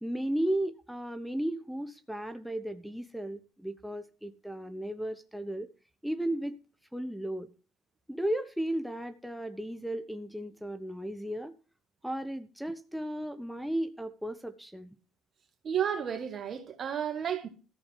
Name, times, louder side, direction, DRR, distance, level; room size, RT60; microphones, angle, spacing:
voice 1, 0.0-5.7 6.0-6.6 6.9-7.5 8.1-11.5 12.0-14.9, right 1 dB, ahead, 1.1 m, -35 dB
voice 2, 15.6-17.5, right 8 dB, 55° right, 2.2 m, -32 dB
14.0 x 5.0 x 7.6 m
supercardioid pair, 70°, 0 cm